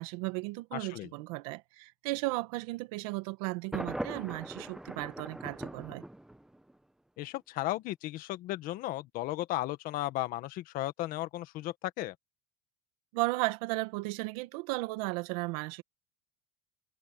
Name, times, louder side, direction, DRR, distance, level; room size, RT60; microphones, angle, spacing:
voice 1, 0.0-6.0 13.1-15.8, right 22 dB, 80° right, 1.7 m, -35 dB
voice 2, 0.7-1.1 7.2-12.1, left 16 dB, 50° left, 1.5 m, -35 dB
Thunder, 3.7-6.7, right 1 dB, 5° right, 0.9 m, -40 dB
cardioid pair, 155°, 19 cm